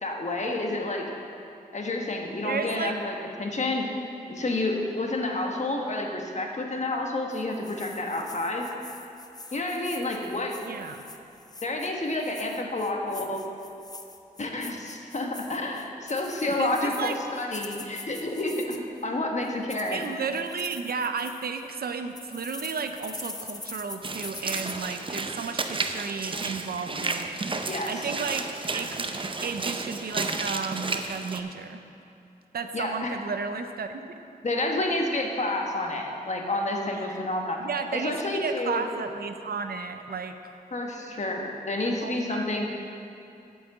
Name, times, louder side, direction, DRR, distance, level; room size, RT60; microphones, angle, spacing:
voice 1, 0.0-1.0 1.7-3.9 4.3-8.7 9.5-10.6 11.6-13.4 14.4-20.0 27.7-28.1 32.7-33.2 34.4-37.6 37.9-38.9 40.7-42.7, left 2 dB, 45° left, 1 dB, 1.3 m, -29 dB
voice 2, 2.4-2.9 10.6-11.0 16.6-17.2 19.9-27.4 27.9-28.5 28.7-29.1 29.4-31.8 32.5-34.0 37.1-37.3 37.6-40.4 42.0-42.7, right 5 dB, 75° right, 7 dB, 0.6 m, -33 dB
sound 1, 7.3-19.0 19.4-21.7 22.1-24.8, left 3 dB, 25° left, 0.6 m, -43 dB
Walk footsteps / Splash splatter, 24.0-31.4, right 3 dB, 35° right, 0.5 m, -32 dB
8.4 x 5.5 x 7.9 m, 2.7 s
wide cardioid pair, 70°, 16 cm